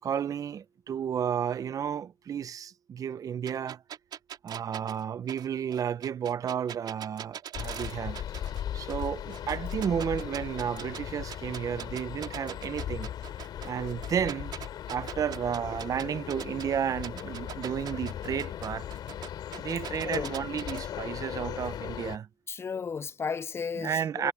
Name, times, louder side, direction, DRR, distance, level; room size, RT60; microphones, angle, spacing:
voice 1, 0.0-3.8 4.4-8.2 8.7-13.1 13.6-14.5 14.9-18.9 19.6-22.3 23.8-24.3, right 8 dB, 55° right, 0.6 m, -32 dB
sound 1, 3.5-8.6 8.9-11.0 11.3-16.7 17.0-20.8, right 9 dB, 80° right, 4.7 m, -42 dB
sound 2, 7.5-22.2, left 10 dB, 90° left, 2.8 m, -38 dB
voice 2, 22.5-24.3, left 5 dB, 35° left, 0.4 m, -34 dB
cardioid pair, 120°, 7 cm